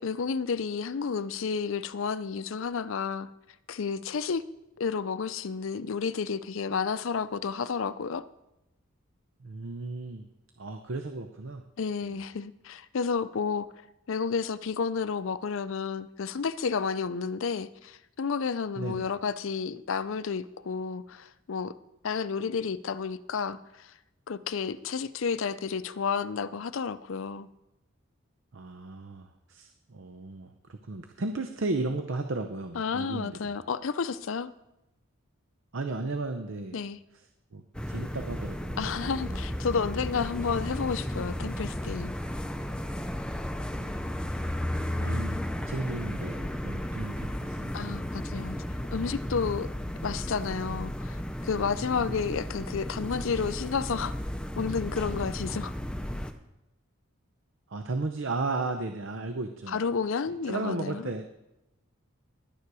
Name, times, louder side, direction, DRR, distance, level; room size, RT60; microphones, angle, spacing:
voice 1, 0.0-3.3 3.7-4.4 4.8-8.2 11.8-13.7 14.1-21.8 22.0-23.9 24.3-27.5 32.7-34.5 36.7-37.0 38.8-42.1 47.7-49.7 50.0-54.1 54.6-55.7 59.7-61.0, left 5 dB, 70° left, 15 dB, 0.5 m, -31 dB
voice 2, 9.4-10.3 10.6-11.6 12.0-12.2 18.8-19.1 28.5-33.5 35.7-36.8 37.1-37.2 37.5-38.8 39.1-39.4 43.8-44.0 44.3-44.5 44.8-45.4 45.7-47.9 57.7-59.8 60.5-61.5, right 3 dB, 65° right, 7 dB, 0.7 m, -35 dB
sound 1, 37.7-56.3, equal, 5° left, 0.6 m, -34 dB
11.5 x 9.5 x 4.8 m, 0.93 s
head